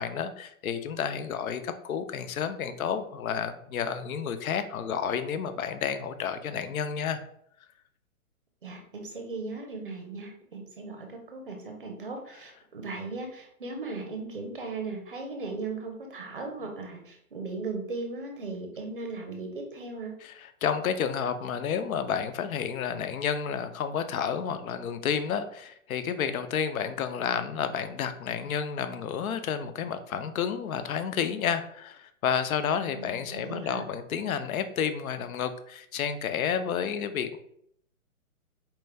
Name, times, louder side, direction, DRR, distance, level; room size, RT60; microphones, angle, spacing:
voice 1, 0.0-7.2 20.2-37.4, left 7 dB, 70° left, 10 dB, 0.5 m, -30 dB
voice 2, 8.6-20.1 32.9-33.8, right 3 dB, 40° right, 3 dB, 0.6 m, -37 dB
4.4 x 2.2 x 3.3 m, 0.70 s
hypercardioid pair, 175°, 44 cm